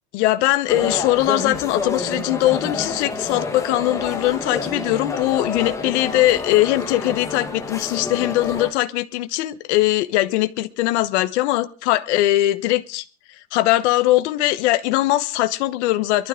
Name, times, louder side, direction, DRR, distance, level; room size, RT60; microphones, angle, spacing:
voice 1, 0.1-13.0 13.5-16.3, left 16 dB, 50° left, 11 dB, 1.2 m, -20 dB
sound 1, 0.7-8.7, left 4 dB, 5° left, 1.2 m, -28 dB
23.0 x 12.5 x 3.8 m, 0.39 s
supercardioid pair, 180°, 45 cm